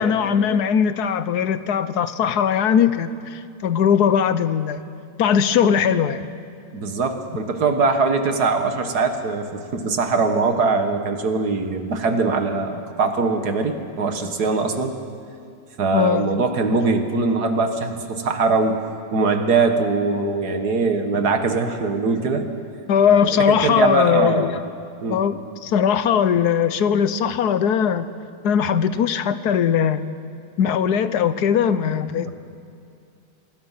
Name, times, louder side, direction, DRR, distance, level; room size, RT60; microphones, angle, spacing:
voice 1, 0.0-4.8 5.2-6.2 15.9-16.4 22.9-24.6 25.1-28.1 28.4-30.1 30.6-32.3, left 8 dB, 75° left, 13 dB, 1.3 m, -20 dB
voice 2, 6.7-15.0 15.8-18.8 19.1-22.5 23.1-24.5 25.0-25.2 32.3-32.4, right 4 dB, 70° right, 6 dB, 2.0 m, -22 dB
25.0 x 21.0 x 5.8 m, 2.3 s
omnidirectional pair, 1.8 m